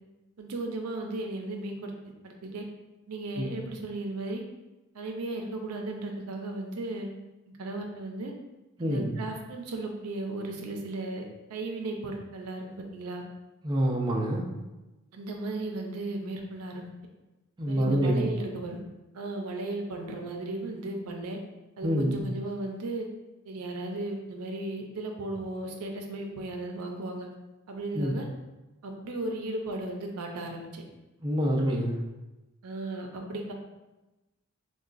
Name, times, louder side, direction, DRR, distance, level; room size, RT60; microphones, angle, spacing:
voice 1, 0.4-1.9 2.2-2.6 3.1-4.4 4.9-7.1 7.6-8.3 8.8-11.2 11.5-13.2 15.1-16.9 17.7-18.8 19.1-21.4 21.8-23.1 23.4-27.3 27.7-28.3 28.8-30.8 32.6-33.5, right 2 dB, 85° right, 2 dB, 0.5 m, -35 dB
voice 2, 8.8-9.1 13.6-14.5 17.6-18.3 21.8-22.2 27.9-28.1 31.2-32.0, equal, 20° right, -3 dB, 0.4 m, -26 dB
3.9 x 2.2 x 2.5 m, 1.0 s
head